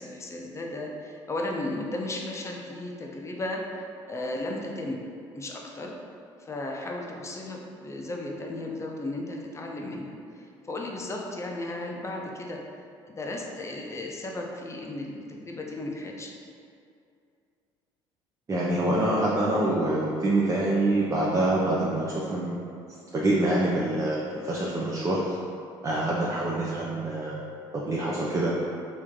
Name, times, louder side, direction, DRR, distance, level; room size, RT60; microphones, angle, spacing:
voice 1, 0.0-3.8 4.1-5.0 5.3-5.9 6.4-12.6 13.1-16.3, left 2 dB, 25° left, 0 dB, 0.6 m, -35 dB
voice 2, 18.5-22.6 23.1-25.4 25.8-27.4 27.7-28.5, right 1 dB, 25° right, -5 dB, 0.5 m, -26 dB
3.1 x 2.6 x 3.6 m, 2.4 s
supercardioid pair, 75°, 12 cm